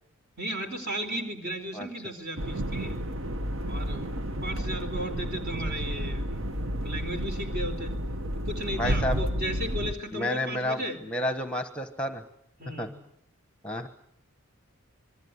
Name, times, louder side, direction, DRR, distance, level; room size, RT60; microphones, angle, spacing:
voice 1, 0.4-3.0 3.7-4.2 4.4-6.3 6.8-8.0 8.3-11.0 12.6-12.9, right 1 dB, 45° right, 6 dB, 4.2 m, -35 dB
sound 1, 2.4-9.9, equal, 65° right, 1.2 m, -31 dB
voice 2, 8.7-9.2 10.1-12.2 12.8-12.9 13.6-13.9, left 1 dB, 5° left, 9 dB, 1.2 m, -30 dB
26.5 x 21.5 x 9.7 m, 0.75 s
head